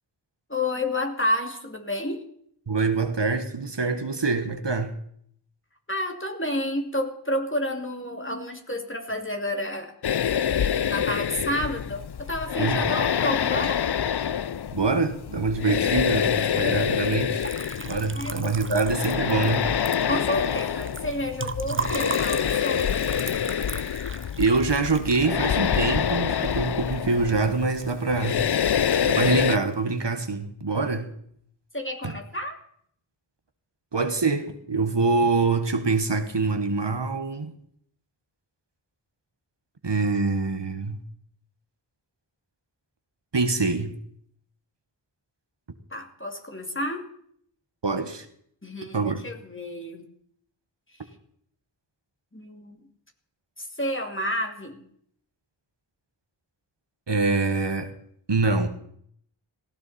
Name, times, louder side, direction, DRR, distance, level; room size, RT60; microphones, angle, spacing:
voice 1, 0.5-2.2 5.9-9.9 10.9-13.8 18.1-18.8 20.1-23.0 31.7-32.6 45.9-47.1 48.6-50.0 52.3-52.8 53.6-54.8, left 1 dB, 25° left, 2.6 m, -30 dB
voice 2, 2.7-4.9 12.6-12.8 14.7-17.5 17.8-19.7 21.4-21.9 23.7-24.0 24.4-28.4 28.8-31.1 32.0-32.1 33.9-37.5 39.8-41.0 43.3-44.0 47.8-48.3 48.9-49.2 57.1-57.9 58.3-58.7, right 3 dB, 60° right, 1.4 m, -25 dB
sound 1, 10.0-29.6, left 8 dB, 55° left, 0.5 m, -26 dB
Liquid, 16.9-27.1 27.5-28.1 28.4-29.2, right 3 dB, 25° right, 0.8 m, -37 dB
18.0 x 16.5 x 4.2 m
wide cardioid pair, 40°, 49 cm